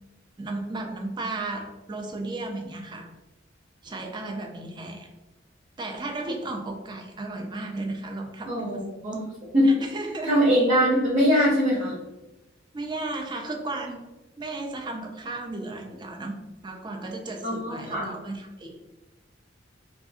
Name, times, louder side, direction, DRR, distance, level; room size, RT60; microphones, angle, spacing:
voice 1, 0.4-3.1 3.8-5.1 5.8-8.8 9.6-10.3 12.7-14.1 14.4-18.8, right 2 dB, 25° right, 3 dB, 0.4 m, -34 dB
voice 2, 8.5-9.2 9.5-9.7 10.2-11.9 17.4-18.1, equal, 45° right, -6 dB, 0.8 m, -22 dB
2.5 x 2.4 x 2.6 m, 1.0 s
head